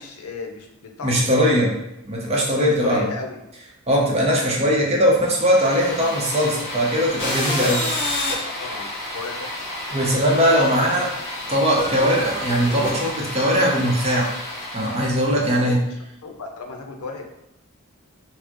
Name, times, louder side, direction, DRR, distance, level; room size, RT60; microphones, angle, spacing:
voice 1, 0.0-1.7 2.6-3.4 8.4-9.7 10.7-11.0 15.4-16.0 16.2-17.2, left 4 dB, 85° left, 3 dB, 0.6 m, -35 dB
voice 2, 1.0-1.7 2.1-3.1 3.9-7.8 9.9-11.1 11.5-14.3 14.7-15.8, equal, 30° right, -2 dB, 0.6 m, -20 dB
sound 1, 5.2-15.4, left 1 dB, 25° left, 1.2 m, -30 dB
4.1 x 2.0 x 2.9 m, 0.86 s
head